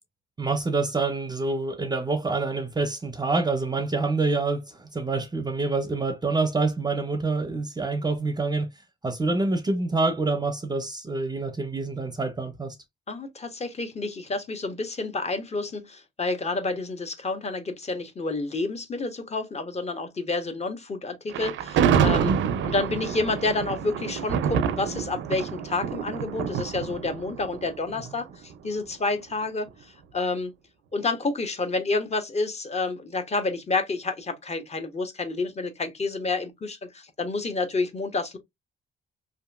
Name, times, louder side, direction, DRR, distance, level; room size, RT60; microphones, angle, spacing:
voice 1, 0.4-8.7 9.0-12.8 22.0-22.4, right 3 dB, 20° right, 0.5 m, -26 dB
voice 2, 13.1-22.3 22.6-30.5 30.9-38.4, left 3 dB, 35° left, 0.8 m, -29 dB
Thunder, 21.3-28.5, right 7 dB, 70° right, 0.4 m, -27 dB
2.8 x 2.5 x 2.3 m
cardioid pair, 90°, 20 cm